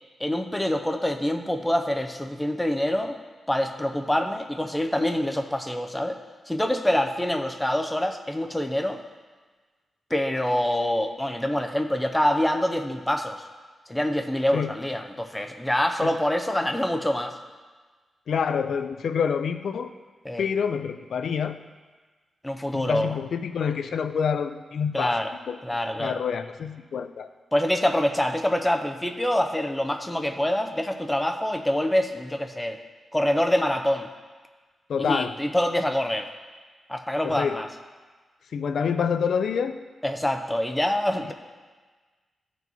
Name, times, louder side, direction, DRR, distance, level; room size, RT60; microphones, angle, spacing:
voice 1, 0.2-3.2 3.5-6.2 6.5-9.0 10.1-13.4 13.9-17.3 20.2-20.4 22.4-23.2 24.9-25.3 25.6-26.2 27.5-32.8 33.1-34.1 35.0-36.3 36.9-37.7 40.0-41.3, left 1 dB, 5° left, 5 dB, 0.5 m, -25 dB
voice 2, 18.3-19.9 20.4-21.6 22.7-25.2 25.5-25.6 26.0-27.3 34.9-35.3 37.2-37.6 38.5-39.8, left 6 dB, 65° left, 9 dB, 0.4 m, -27 dB
13.5 x 4.6 x 4.1 m, 1.4 s
wide cardioid pair, 165°, 0 cm